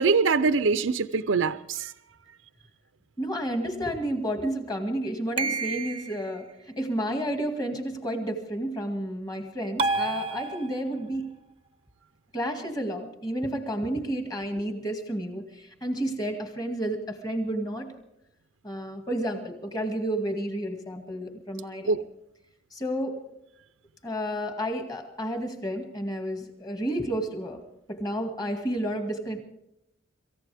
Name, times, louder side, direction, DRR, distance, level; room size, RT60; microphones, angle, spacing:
voice 1, 0.0-1.9 21.9-22.0, right 4 dB, 75° right, 13 dB, 0.6 m, -23 dB
voice 2, 3.2-11.4 12.3-18.0 18.6-22.0 22.7-23.2 24.0-27.6 27.9-29.4, right 1 dB, 20° left, 5 dB, 2.0 m, -31 dB
sound 1, 5.4-6.3 9.8-11.0, right 3 dB, 25° right, 0.6 m, -29 dB
26.5 x 15.0 x 3.5 m, 0.84 s
head